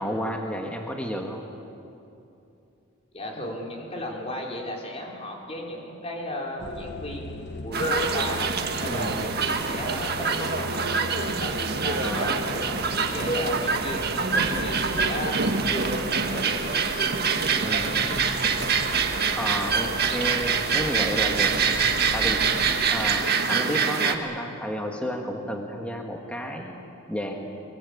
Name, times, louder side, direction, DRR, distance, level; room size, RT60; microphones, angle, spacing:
voice 1, 0.0-1.4 8.8-9.2 12.0-12.5 17.6-18.2 19.3-27.5, equal, 5° left, 1 dB, 1.6 m, -32 dB
voice 2, 3.1-15.4 15.7-17.2, left 1 dB, 30° left, -1 dB, 4.1 m, -34 dB
sound 1, 6.6-23.3, left 2 dB, 50° left, 1.2 m, -38 dB
sound 2, 7.7-24.1, right 5 dB, 45° right, 1.6 m, -25 dB
24.5 x 22.5 x 8.6 m, 2.8 s
head